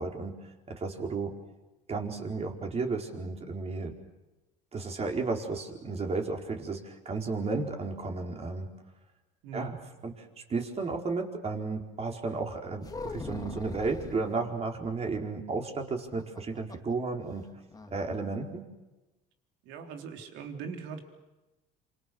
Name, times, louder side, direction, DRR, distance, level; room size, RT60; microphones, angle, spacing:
voice 1, 0.0-1.3 1.9-3.9 4.7-8.7 9.5-9.8 10.0-10.1 10.5-17.5 17.9-18.7, right 4 dB, 35° right, 2 dB, 4.7 m, -33 dB
voice 2, 9.4-9.7 19.6-21.0, right 5 dB, 80° right, 5 dB, 3.7 m, -40 dB
sound 1, 12.8-14.3 16.0-16.9 17.2-17.3 17.7-18.0, left 3 dB, 20° left, 2.1 m, -41 dB
27.5 x 27.0 x 6.5 m, 1.1 s
supercardioid pair, 95°, 18 cm